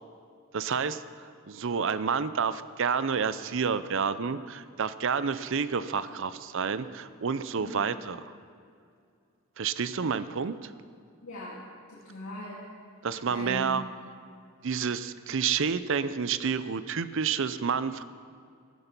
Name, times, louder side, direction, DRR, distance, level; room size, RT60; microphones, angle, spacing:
voice 1, 0.5-8.3 9.6-10.7 13.0-13.8 14.6-18.0, right 6 dB, 65° right, 14 dB, 0.6 m, -29 dB
voice 2, 7.6-7.9 11.2-12.7 13.3-13.8, left 1 dB, 85° left, -6 dB, 2.5 m, -40 dB
15.0 x 12.5 x 6.0 m, 2.3 s
head